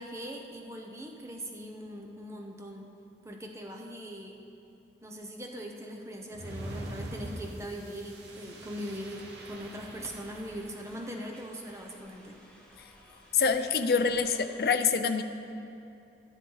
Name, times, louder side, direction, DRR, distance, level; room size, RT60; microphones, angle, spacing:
voice 1, 0.0-2.9 3.2-4.4 5.0-12.4, equal, 15° right, 1 dB, 0.7 m, -41 dB
sound 1, 6.3-11.2, right 1 dB, 75° right, 1.2 m, -43 dB
sound 2, 9.4-14.7, equal, 5° left, 1.3 m, -56 dB
voice 2, 13.3-15.2, left 5 dB, 60° left, 8 dB, 0.5 m, -26 dB
12.5 x 10.5 x 4.0 m, 2.6 s
head